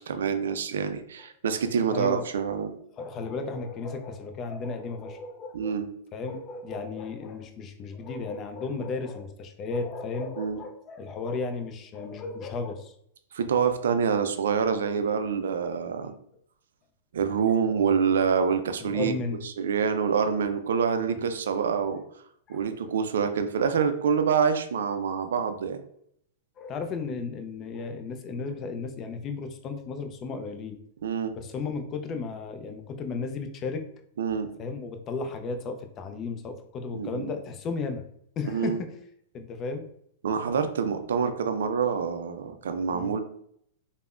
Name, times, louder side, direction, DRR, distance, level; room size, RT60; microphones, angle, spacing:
voice 1, 0.1-2.7 5.5-5.9 10.4-10.6 13.3-16.1 17.1-19.1 19.4-22.0 22.5-25.8 31.0-31.3 34.2-34.5 36.9-37.3 38.5-38.8 40.2-43.2, right 6 dB, 75° right, 8 dB, 0.3 m, -26 dB
voice 2, 1.9-2.2 3.0-5.8 6.1-12.9 18.8-19.4 20.0-20.2 21.1-21.2 22.5-22.6 26.6-30.8 31.3-33.8 34.6-38.0 38.4-38.9 39.3-39.9 42.9-43.1, left 4 dB, 35° left, 6 dB, 0.4 m, -34 dB
3.4 x 2.0 x 2.4 m, 0.69 s
hypercardioid pair, 115°, 0 cm